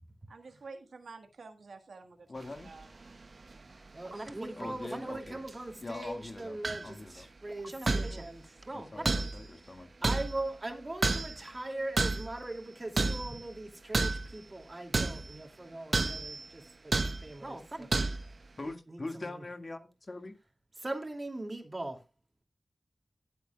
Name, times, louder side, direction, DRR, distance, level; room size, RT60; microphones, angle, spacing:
voice 1, 0.3-2.3 2.6-2.9, right 4 dB, 85° right, 1.6 m, -49 dB
voice 2, 2.3-2.7 4.6-5.4 5.8-6.6 6.8-7.3 8.9-9.9 18.6-20.3, left 2 dB, 50° left, 1.8 m, -42 dB
sound 1, 2.7-3.2 3.5-3.6 5.5-5.6 5.9-6.1 6.6-6.9 7.9-8.3 9.0-9.5 10.0-10.5 11.0-11.5 12.0-12.4 13.0-13.4 13.9-14.4 14.9-15.4 15.9-16.5 16.9-17.3 17.9-18.3, right 3 dB, 55° right, 0.7 m, -30 dB
voice 3, 3.9-17.9 18.7-19.4 20.8-22.0, right 2 dB, 35° right, 2.6 m, -40 dB
19.0 x 7.8 x 2.3 m
cardioid pair, 55°, 0 cm